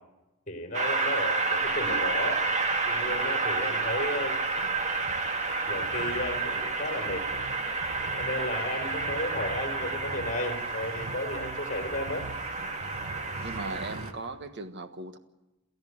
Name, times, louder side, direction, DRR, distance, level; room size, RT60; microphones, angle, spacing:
voice 1, 0.5-2.5 2.9-4.4 5.7-7.3 8.2-12.3, left 1 dB, 35° left, 5 dB, 3.9 m, -34 dB
Train, 0.7-14.1, right 3 dB, 35° right, 1.9 m, -30 dB
sound 1, 1.6-14.1, right 2 dB, 90° right, 1.7 m, -45 dB
voice 2, 13.4-15.2, right 3 dB, 55° right, 9 dB, 1.5 m, -38 dB
28.5 x 13.5 x 9.6 m, 1.0 s
head